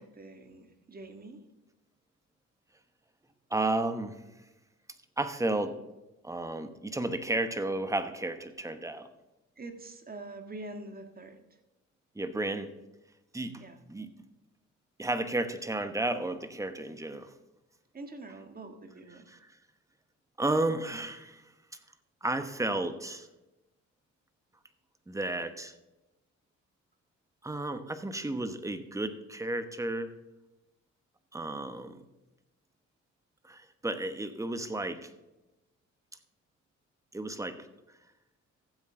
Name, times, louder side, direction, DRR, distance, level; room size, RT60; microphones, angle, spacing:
voice 1, 0.0-1.4 9.6-11.4 12.4-12.5 13.6-13.8 17.9-19.3, right 2 dB, 30° right, 6 dB, 1.6 m, -45 dB
voice 2, 3.5-4.2 5.2-5.8 6.2-9.1 12.1-12.7 13.3-13.6 13.9-14.1 15.0-17.3 20.4-21.4 22.2-23.3 25.1-25.7 27.4-30.1 31.3-32.0 33.4-35.1 37.1-37.7, right 2 dB, 10° right, 9 dB, 1.1 m, -32 dB
14.5 x 7.9 x 3.8 m, 0.99 s
cardioid pair, 90°, 30 cm